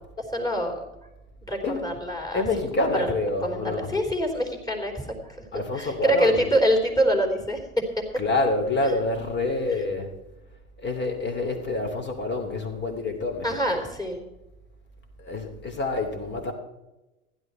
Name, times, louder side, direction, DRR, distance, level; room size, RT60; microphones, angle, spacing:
voice 1, 0.2-0.8 1.5-2.4 2.9-3.1 3.4-5.5 5.7-7.6 13.4-14.3, equal, 10° left, 0 dB, 3.7 m, -25 dB
voice 2, 1.6-2.0 2.3-3.9 5.5-6.5 8.1-10.1 10.8-13.7 15.2-16.5, left 2 dB, 25° left, 5 dB, 2.9 m, -27 dB
15.5 x 11.0 x 4.4 m, 1.0 s
figure-of-eight pair, 80°, 43 cm